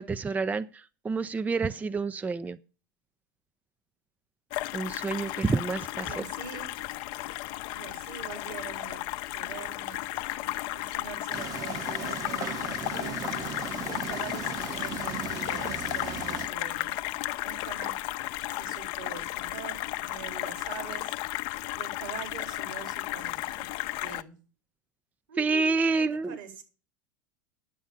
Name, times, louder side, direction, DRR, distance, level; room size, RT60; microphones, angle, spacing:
voice 1, 0.0-2.6 4.7-6.2 25.4-26.4, right 4 dB, 15° right, 0.5 m, -28 dB
sound 1, 4.5-24.2, left 16 dB, 55° left, 0.6 m, -34 dB
voice 2, 6.0-6.7 7.7-9.0 9.3-10.0 10.3-13.2 13.8-17.0 17.4-17.9 18.5-21.3 21.7-23.7 24.0-24.3 25.3-26.6, right 7 dB, 75° right, 4.1 m, -44 dB
sound 2, 11.3-16.5, right 7 dB, 35° right, 1.0 m, -38 dB
10.0 x 7.2 x 7.3 m
hypercardioid pair, 95°, 10 cm